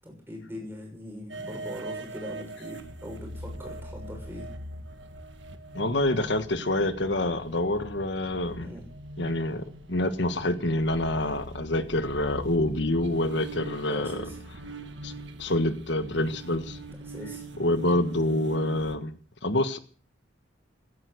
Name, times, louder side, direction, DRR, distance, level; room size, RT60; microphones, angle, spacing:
voice 1, 0.0-4.5 8.6-8.8 13.9-14.4 17.0-17.5, equal, 10° right, 1 dB, 6.4 m, -41 dB
sound 1, 1.3-19.0, right 1 dB, 70° right, 1.6 m, -41 dB
voice 2, 5.7-8.7 9.2-14.2 15.0-15.1 15.4-16.8 17.6-19.8, left 1 dB, 65° left, 10 dB, 1.5 m, -27 dB
16.5 x 11.0 x 6.5 m, 0.43 s
head